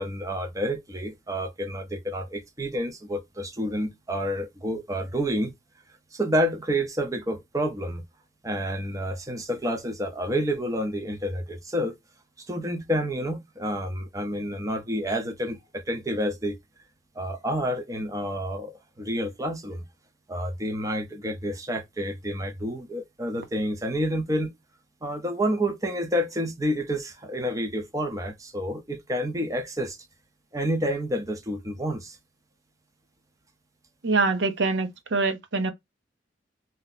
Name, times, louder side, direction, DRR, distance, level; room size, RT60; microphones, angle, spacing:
voice 1, 0.0-5.5 6.1-8.0 8.4-12.0 12.4-16.6 17.2-19.8 20.3-24.5 25.0-30.0 30.5-32.2, equal, 20° right, 0.6 m, -29 dB
voice 2, 34.0-35.7, right 3 dB, 70° right, 0.7 m, -24 dB
2.7 x 2.1 x 4.0 m
head